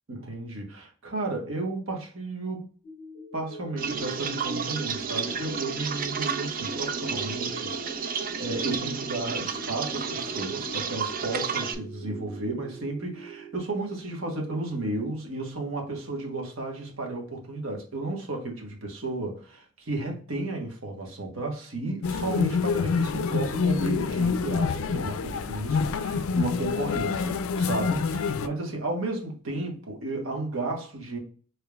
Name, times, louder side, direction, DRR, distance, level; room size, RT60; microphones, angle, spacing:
voice 1, 0.1-2.7 3.3-31.2, right 2 dB, 70° right, 1.2 m, -33 dB
sound 1, 2.8-13.6, right 2 dB, 40° left, 0.9 m, -43 dB
sound 2, 3.8-11.7, right 6 dB, 40° right, 0.4 m, -31 dB
sound 3, 22.0-28.5, left 5 dB, 70° left, 0.4 m, -27 dB
5.0 x 3.2 x 2.3 m
head